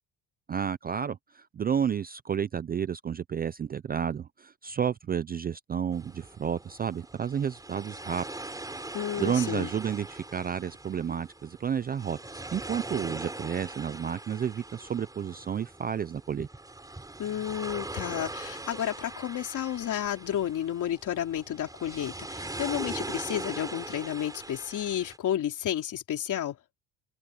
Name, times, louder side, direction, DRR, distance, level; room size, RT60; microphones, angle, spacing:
voice 1, 0.5-8.6 9.2-16.5, right 8 dB, 25° right, 0.4 m, -31 dB
sound 1, 5.9-25.2, right 2 dB, 10° right, 6.7 m, -41 dB
voice 2, 8.9-9.7 17.2-26.6, left 10 dB, 50° left, 3.6 m, -31 dB
open air
cardioid pair, 145°, 38 cm